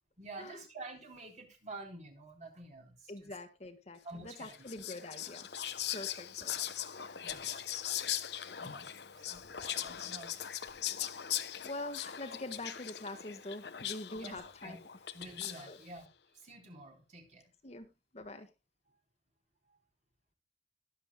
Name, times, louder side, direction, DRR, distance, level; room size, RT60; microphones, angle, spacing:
voice 1, 0.2-3.4 4.0-4.7 7.2-7.6 8.6-8.9 9.1-10.5 14.1-14.8 15.1-17.5 18.9-19.0 19.7-19.8, right 2 dB, 45° right, 2 dB, 3.8 m, -49 dB
voice 2, 3.1-5.5 5.9-6.5 11.6-14.8 15.7-15.8 17.6-17.9 18.1-18.5, left 2 dB, 40° left, 7 dB, 1.5 m, -44 dB
Whispering, 4.4-15.8, left 11 dB, 70° left, 0.9 m, -40 dB
21.5 x 7.6 x 2.2 m, 0.24 s
head